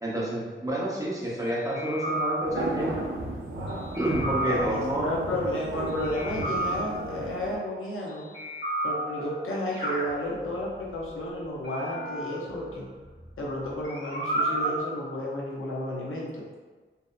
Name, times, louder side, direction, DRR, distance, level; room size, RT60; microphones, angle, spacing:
voice 1, 0.0-2.9 4.0-5.1, right 1 dB, 15° right, -7 dB, 0.6 m, -29 dB
sound 1, 1.7-2.9 3.9-5.0 6.1-7.3 8.3-9.4 9.7-10.8 11.6-13.5 13.8-14.8, right 1 dB, 60° left, 1.1 m, -32 dB
sound 2, 2.4-7.6, right 2 dB, 85° right, 0.4 m, -34 dB
voice 2, 4.4-8.3 8.8-12.8 13.4-16.4, left 1 dB, 90° left, -4 dB, 0.6 m, -32 dB
2.7 x 2.0 x 2.3 m, 1.3 s
wide cardioid pair, 80°, 21 cm